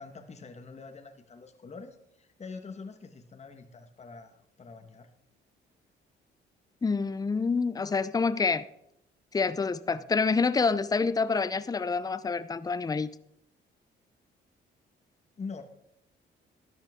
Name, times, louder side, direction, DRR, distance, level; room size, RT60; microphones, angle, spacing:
voice 1, 0.0-5.1 15.4-15.6, left 4 dB, 35° left, 1.4 m, -44 dB
voice 2, 6.8-8.7 9.3-13.1, left 4 dB, 20° left, 0.6 m, -27 dB
13.5 x 10.5 x 3.6 m
cardioid pair, 90°, 20 cm